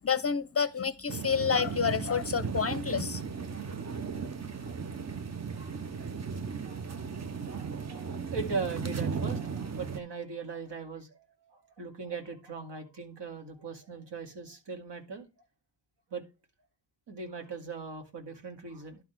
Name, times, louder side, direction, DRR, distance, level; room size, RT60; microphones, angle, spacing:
voice 1, 0.0-3.2, left 6 dB, 35° left, 0.6 m, -29 dB
sound 1, 1.1-10.0, right 6 dB, 35° right, 0.8 m, -36 dB
voice 2, 3.7-4.1 4.6-5.0 5.5-6.1 6.6-7.1 7.5-15.3 16.1-16.2 17.1-19.0, right 4 dB, 65° right, 2.3 m, -40 dB
11.5 x 3.9 x 4.5 m
cardioid pair, 65°, 44 cm